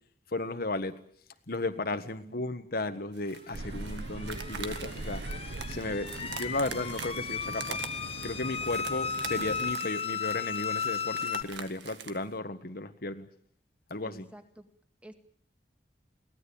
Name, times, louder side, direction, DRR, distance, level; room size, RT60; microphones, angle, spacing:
voice 1, 0.3-0.9 1.5-5.2 5.7-7.8 8.2-13.3 13.9-14.2, left 2 dB, 60° left, 8 dB, 1.5 m, -34 dB
voice 2, 1.9-2.4 14.0-14.7 15.0-15.1, right 1 dB, 5° right, 7 dB, 2.1 m, -51 dB
sound 1, 3.1-12.3, right 6 dB, 85° right, 1.9 m, -44 dB
sound 2, 3.5-9.7, right 2 dB, 70° right, 0.9 m, -41 dB
sound 3, 3.8-11.4, left 6 dB, 35° left, 1.0 m, -35 dB
23.0 x 17.5 x 8.8 m, 0.64 s
head